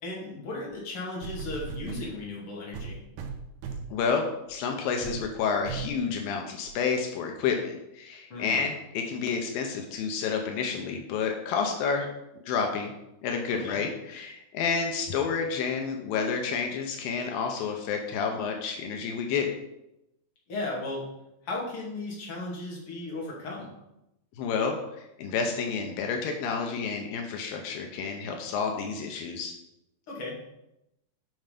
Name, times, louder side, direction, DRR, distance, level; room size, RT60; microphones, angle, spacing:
voice 1, 0.0-3.0 8.3-8.6 13.5-13.8 20.5-21.1 21.4-23.7 30.1-30.5, left 2 dB, 40° left, -3 dB, 3.2 m, -36 dB
sound 1, 0.7-0.8 1.2-2.1 2.7-4.0 4.5-4.7 5.0-5.3 5.7-6.0 6.7-6.8, right 6 dB, 80° right, 2.6 m, -37 dB
voice 2, 3.9-12.1 12.5-12.9 13.2-19.5 24.4-29.5, left 5 dB, 85° left, 3 dB, 2.7 m, -30 dB
9.6 x 5.6 x 5.2 m, 0.88 s
omnidirectional pair, 4.1 m